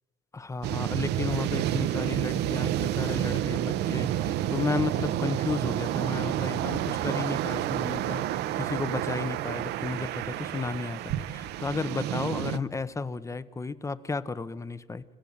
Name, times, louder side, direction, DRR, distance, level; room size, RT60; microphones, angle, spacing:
voice 1, 0.3-15.0, left 4 dB, 20° left, 15 dB, 0.8 m, -33 dB
sound 1, 0.6-12.6, right 12 dB, 80° right, 0.8 m, -29 dB
28.0 x 15.0 x 8.7 m, 1.5 s
cardioid pair, 110°, 17 cm